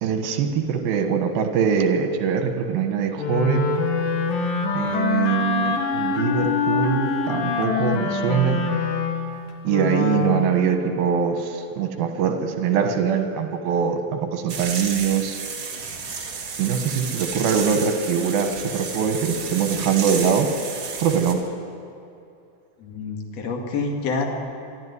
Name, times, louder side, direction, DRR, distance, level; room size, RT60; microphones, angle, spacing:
voice 1, 0.0-3.7 4.7-8.6 9.6-15.4 16.6-20.5 21.0-21.4, right 7 dB, 80° right, 5 dB, 3.3 m, -23 dB
Wind instrument woodwind instrument, 3.2-10.5, left 5 dB, 75° left, 3.3 m, -24 dB
sound 1, 14.5-21.3, right 5 dB, 45° right, 2.2 m, -32 dB
voice 2, 22.8-24.3, left 4 dB, 50° left, 1 dB, 2.9 m, -27 dB
23.5 x 13.0 x 9.7 m, 2.5 s
omnidirectional pair, 4.2 m